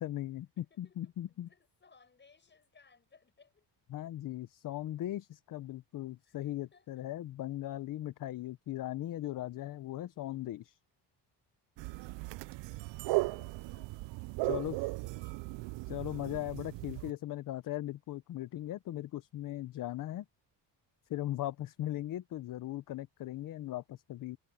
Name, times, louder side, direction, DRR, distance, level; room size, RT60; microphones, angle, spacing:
voice 1, 0.0-1.5 3.9-10.8 14.4-14.8 15.9-20.2 21.1-24.4, left 14 dB, 50° left, 0.7 m, -38 dB
voice 2, 0.6-3.7 6.2-7.1 12.1-12.4 12.6-15.4, left 5 dB, 25° left, 7.5 m, -65 dB
sound 1, 11.8-17.1, right 22 dB, 90° right, 0.5 m, -37 dB
cardioid pair, 160°, 42 cm